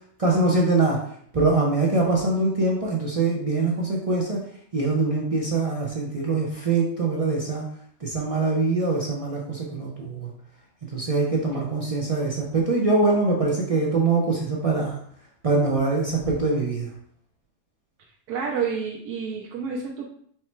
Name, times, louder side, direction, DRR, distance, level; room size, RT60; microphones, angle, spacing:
voice 1, 0.2-1.0 1.3-4.4 4.7-7.6 8.0-10.3 10.9-15.0 15.4-16.9, right 3 dB, 60° right, -3 dB, 0.3 m, -23 dB
voice 2, 18.0-20.1, right 6 dB, 80° right, -1 dB, 1.1 m, -30 dB
4.6 x 2.2 x 4.3 m, 0.63 s
omnidirectional pair, 1.6 m